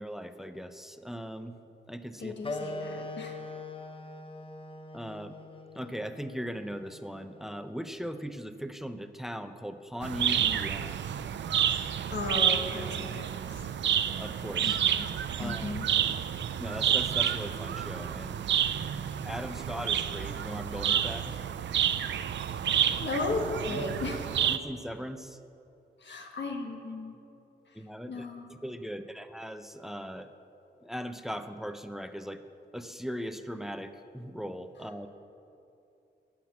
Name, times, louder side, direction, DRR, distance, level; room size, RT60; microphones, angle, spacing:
voice 1, 0.0-1.5 1.9-2.3 4.9-5.4 5.7-11.0 14.2-14.8 15.4-15.8 16.6-18.4 19.2-21.4 23.7-23.9 24.4-25.4 27.7-30.3 30.8-32.4 32.7-35.1, equal, ahead, 9 dB, 0.6 m, -39 dB
voice 2, 2.2-3.4 11.7-11.8 12.1-13.6 14.6-15.1 15.4-15.9 23.0-24.2 26.0-27.2 28.1-28.6, left 3 dB, 75° left, 3 dB, 1.5 m, -35 dB
Wind instrument woodwind instrument, 2.4-7.6, left 2 dB, 30° left, 0.8 m, -42 dB
sound 1, 10.0-24.6, right 9 dB, 80° right, 0.4 m, -29 dB
12.0 x 5.9 x 8.4 m, 2.8 s
cardioid pair, 60°, 19 cm